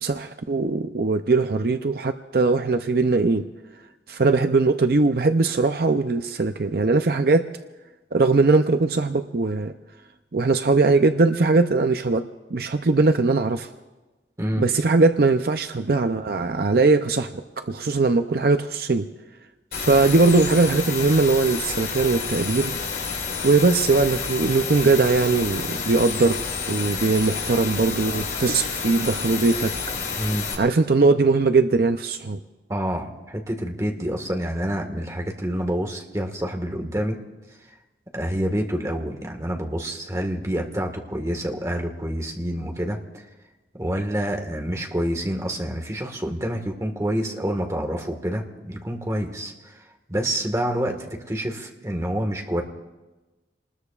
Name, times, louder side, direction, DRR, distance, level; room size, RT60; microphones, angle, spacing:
voice 1, 0.0-3.4 4.1-7.5 8.1-9.7 10.3-12.2 12.5-13.7 14.6-19.1 19.7-22.8 23.4-26.4 26.7-29.7 30.6-32.4, right 3 dB, 55° right, 8 dB, 0.5 m, -20 dB
sound 1, 19.7-30.5, left 5 dB, 60° left, 3.8 m, -29 dB
voice 2, 32.7-37.2 38.1-43.2 43.7-49.8 50.1-52.6, equal, 15° right, 2 dB, 1.6 m, -27 dB
27.5 x 20.0 x 2.4 m, 1.2 s
head